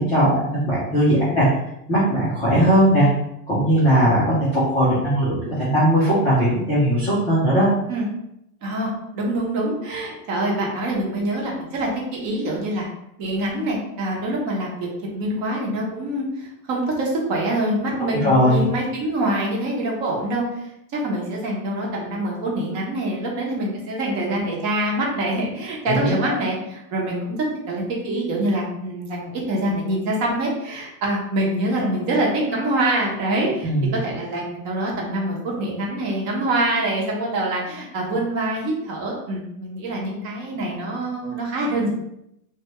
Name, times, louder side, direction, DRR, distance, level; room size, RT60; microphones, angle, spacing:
voice 1, 0.0-1.5 1.9-3.1 3.5-7.7 18.1-18.6 25.9-26.3 33.6-34.0, equal, 15° left, -11 dB, 0.3 m, -19 dB
voice 2, 8.6-12.9 13.2-20.7 20.9-27.4 27.7-33.7 34.0-41.9, right 1 dB, 35° right, -2 dB, 0.8 m, -25 dB
2.8 x 2.2 x 2.9 m, 0.80 s
supercardioid pair, 145°, 48 cm